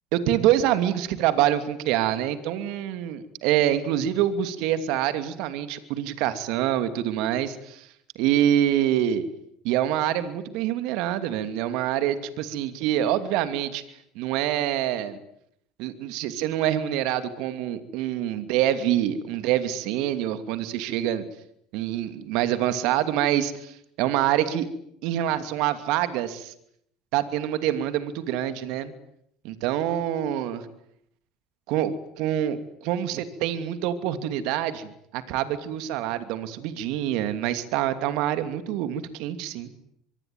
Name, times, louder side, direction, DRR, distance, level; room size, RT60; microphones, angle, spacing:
voice 1, 0.1-7.9 8.2-9.2 9.6-13.8 14.1-15.2 15.8-21.2 21.7-24.7 25.0-26.5 27.1-28.9 29.4-30.6 31.7-39.7, right 11 dB, 70° right, 10 dB, 2.7 m, -26 dB
24.5 x 23.0 x 9.5 m, 0.73 s
hypercardioid pair, 75°, 0 cm